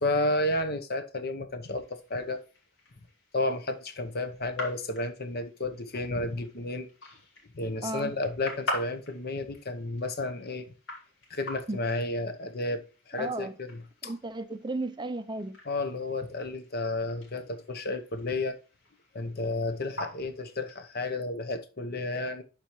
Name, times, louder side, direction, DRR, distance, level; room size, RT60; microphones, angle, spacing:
voice 1, 0.0-2.4 3.3-6.9 7.5-10.7 11.3-13.8 15.7-18.6 19.1-22.4, left 2 dB, 55° left, 1.0 m, -32 dB
sound 1, 1.6-21.2, left 1 dB, 85° left, 2.6 m, -45 dB
voice 2, 13.1-13.5 14.0-15.6, right 2 dB, 25° right, 0.5 m, -34 dB
11.5 x 4.5 x 3.1 m
head